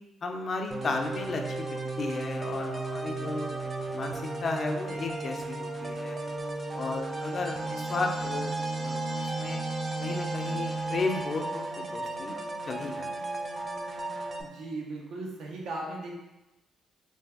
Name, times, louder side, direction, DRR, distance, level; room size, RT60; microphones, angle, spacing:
voice 1, 0.2-3.5 3.9-6.2 6.7-9.6 10.0-12.4 12.7-13.1, left 3 dB, 45° left, 3 dB, 0.4 m, -34 dB
sound 1, 0.7-14.4, right 2 dB, 30° right, 0.4 m, -34 dB
sound 2, 6.6-12.0, left 2 dB, 90° right, 1.3 m, -45 dB
voice 2, 14.4-16.1, right 2 dB, 75° right, -1 dB, 0.7 m, -37 dB
2.6 x 2.3 x 3.5 m, 0.99 s
cardioid pair, 90°, 0 cm